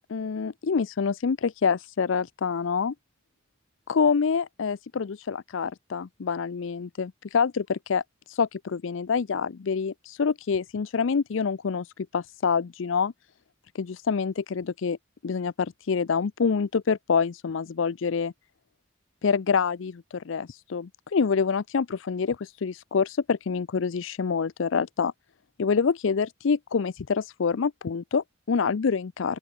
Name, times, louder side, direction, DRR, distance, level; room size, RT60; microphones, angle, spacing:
voice 1, 0.1-2.9 3.9-13.1 13.7-15.0 15.2-18.3 19.2-25.1 25.6-29.4, left 5 dB, 70° left, 0.5 m, -26 dB
open air
head